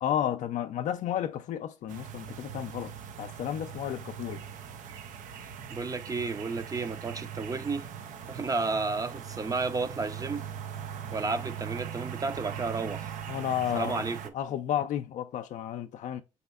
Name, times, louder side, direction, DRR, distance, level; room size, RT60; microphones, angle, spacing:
voice 1, 0.0-2.9 3.2-4.4 13.3-14.1 14.3-16.2, left 10 dB, 70° left, 0.4 m, -32 dB
sound 1, 1.9-14.3, right 8 dB, 75° right, 0.6 m, -40 dB
voice 2, 5.7-7.9 8.3-10.4 11.1-13.1 13.7-14.3, right 3 dB, 25° right, 0.6 m, -32 dB
5.3 x 4.1 x 2.3 m
cardioid pair, 75°, 13 cm